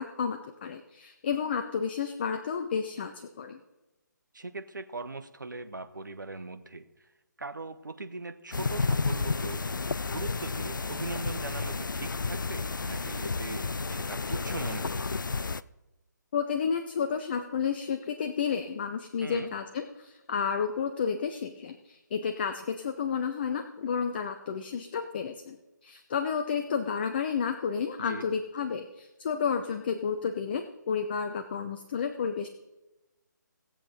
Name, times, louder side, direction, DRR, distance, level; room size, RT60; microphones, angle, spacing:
voice 1, 0.0-3.6 16.3-25.6 25.8-32.5, left 6 dB, 30° left, 7 dB, 0.6 m, -31 dB
voice 2, 4.3-7.1 7.4-9.6 10.1-15.3 19.2-19.5 28.0-28.3, right 3 dB, 75° right, 9 dB, 1.0 m, -40 dB
sound 1, 8.5-15.6, left 4 dB, 80° left, 0.4 m, -31 dB
18.0 x 7.6 x 4.1 m, 1.0 s
figure-of-eight pair, 145°, 10 cm